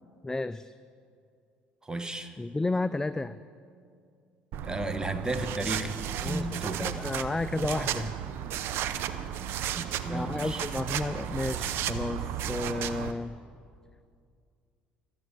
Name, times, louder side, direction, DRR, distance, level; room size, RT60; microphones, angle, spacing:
voice 1, 0.2-0.7 2.4-3.4 6.2-6.5 6.8-8.1 10.1-13.4, left 2 dB, 15° left, 14 dB, 0.3 m, -32 dB
voice 2, 1.8-2.4 4.6-6.0 6.2-6.9 9.7-10.6, right 2 dB, 20° right, 9 dB, 1.1 m, -33 dB
sound 1, 4.5-13.1, right 10 dB, 70° right, 0.6 m, -34 dB
13.5 x 7.3 x 9.6 m, 2.3 s
supercardioid pair, 75°, 4 cm